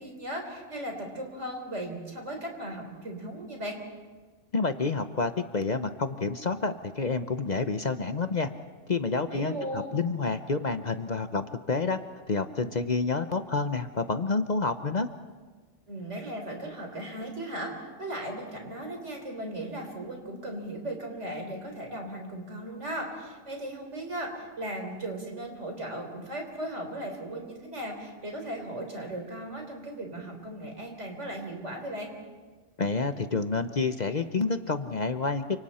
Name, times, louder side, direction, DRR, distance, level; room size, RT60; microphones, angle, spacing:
voice 1, 0.0-3.8 9.3-10.0 15.9-17.7 18.0-32.1, right 1 dB, 75° right, 2 dB, 4.2 m, -37 dB
voice 2, 4.5-8.5 8.9-12.0 12.3-15.1 32.8-35.6, left 4 dB, 40° left, 9 dB, 0.8 m, -29 dB
29.5 x 26.0 x 4.3 m, 1.4 s
omnidirectional pair, 1.2 m